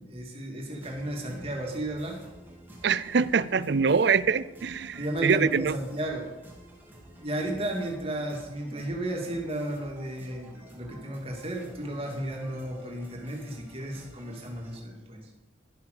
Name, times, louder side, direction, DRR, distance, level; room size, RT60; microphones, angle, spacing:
voice 1, 0.0-2.2 5.0-6.3 7.2-15.2, right 1 dB, 30° right, 0 dB, 2.5 m, -33 dB
sound 1, 0.7-14.8, right 1 dB, 10° right, 2.1 m, -50 dB
voice 2, 2.8-5.7, right 5 dB, 55° right, 18 dB, 0.4 m, -24 dB
12.0 x 8.5 x 6.7 m, 1.0 s
head